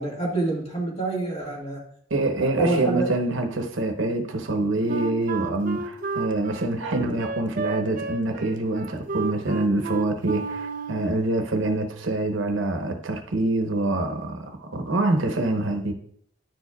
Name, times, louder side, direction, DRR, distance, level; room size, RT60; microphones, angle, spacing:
voice 1, 0.0-1.8 2.4-3.1, right 2 dB, 30° left, 1.8 m, -27 dB
voice 2, 2.1-15.9, right 2 dB, 85° right, 0.9 m, -25 dB
Wind instrument woodwind instrument, 4.9-11.2, right 4 dB, 45° right, 0.5 m, -32 dB
10.5 x 4.6 x 2.3 m
head